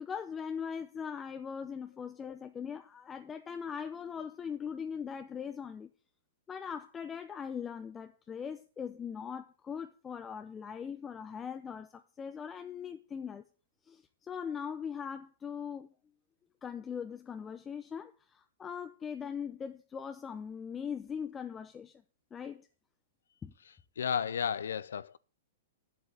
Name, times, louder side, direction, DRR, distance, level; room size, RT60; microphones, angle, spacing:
voice 1, 0.0-5.9 6.5-13.4 13.8-15.9 16.6-22.0 22.3-22.7 23.4-23.5, left 7 dB, 20° left, 0.7 m, -40 dB
voice 2, 24.0-25.2, left 7 dB, 80° left, 0.5 m, -33 dB
8.1 x 8.0 x 7.9 m
hypercardioid pair, 120°, 0 cm